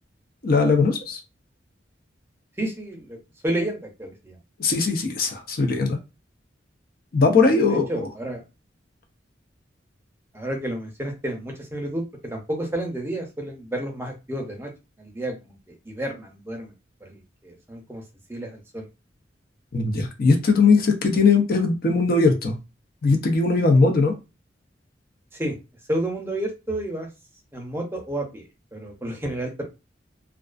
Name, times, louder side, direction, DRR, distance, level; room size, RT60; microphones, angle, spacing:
voice 1, 0.4-1.2 4.6-6.0 7.1-7.9 19.7-22.6 23.0-24.1, left 4 dB, 50° left, 5 dB, 0.5 m, -19 dB
voice 2, 2.6-3.2 3.4-4.4 7.5-8.4 10.3-14.7 15.0-15.6 15.9-16.7 17.0-18.0 18.3-18.8 25.3-25.5 25.9-27.1 27.5-29.6, right 1 dB, 15° right, 1 dB, 0.5 m, -31 dB
2.3 x 2.3 x 2.4 m, 0.27 s
head